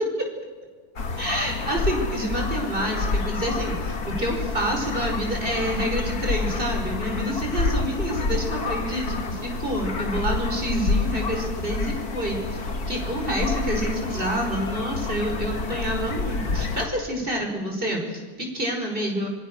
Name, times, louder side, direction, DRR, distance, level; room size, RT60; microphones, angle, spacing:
sound 1, 1.0-16.9, left 3 dB, 60° left, 2.5 m, -28 dB
voice 1, 1.2-19.3, right 1 dB, 30° right, 2 dB, 5.4 m, -28 dB
26.0 x 22.5 x 6.8 m, 1.4 s
omnidirectional pair, 1.8 m